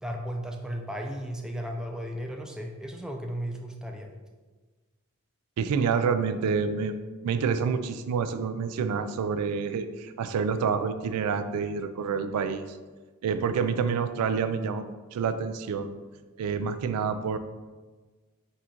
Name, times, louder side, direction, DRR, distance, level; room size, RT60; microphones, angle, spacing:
voice 1, 0.0-4.1, equal, 5° right, 2 dB, 0.3 m, -35 dB
voice 2, 5.6-12.8 13.2-15.9 16.4-17.4, right 6 dB, 90° right, 10 dB, 0.3 m, -28 dB
3.7 x 2.5 x 4.3 m, 1.3 s
head